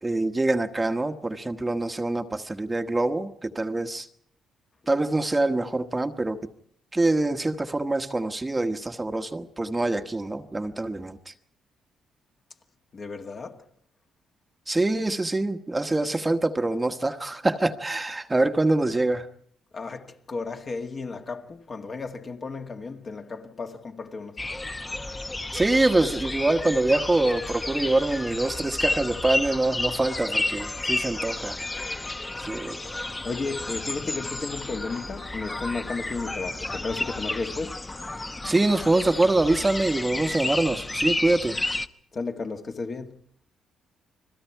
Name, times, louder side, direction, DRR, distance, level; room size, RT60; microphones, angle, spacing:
voice 1, 0.0-4.1 4.9-6.5 6.9-11.3 14.7-19.3 25.5-31.6 32.4-32.8 38.4-41.6, right 2 dB, 15° right, 1.2 m, -25 dB
voice 2, 12.9-13.7 19.7-24.5 33.2-37.8 42.1-43.2, left 4 dB, 40° left, 1.9 m, -34 dB
sound 1, 24.4-41.9, left 2 dB, 20° left, 1.0 m, -31 dB
30.0 x 21.5 x 4.6 m
cardioid pair, 90°, 0 cm